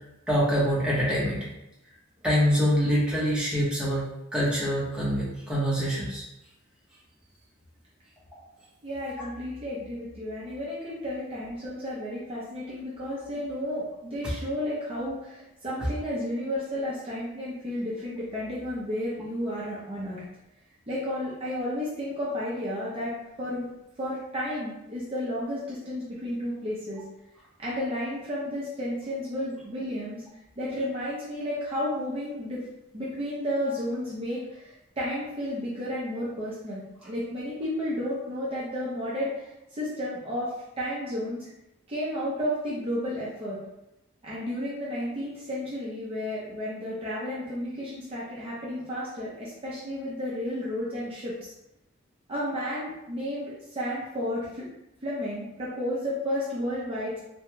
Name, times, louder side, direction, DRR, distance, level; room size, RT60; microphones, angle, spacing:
voice 1, 0.3-1.5 2.2-4.0 4.3-6.2 9.2-9.3, equal, 5° right, -8 dB, 0.9 m, -25 dB
voice 2, 8.8-20.2 20.9-23.1 23.4-23.7 24.0-27.0 27.6-30.2 30.6-32.6 32.9-40.5 40.8-41.5 41.9-43.6 44.2-51.5 52.3-54.7 55.0-57.2, equal, 30° right, -8 dB, 0.6 m, -32 dB
3.4 x 2.2 x 3.0 m, 0.89 s
head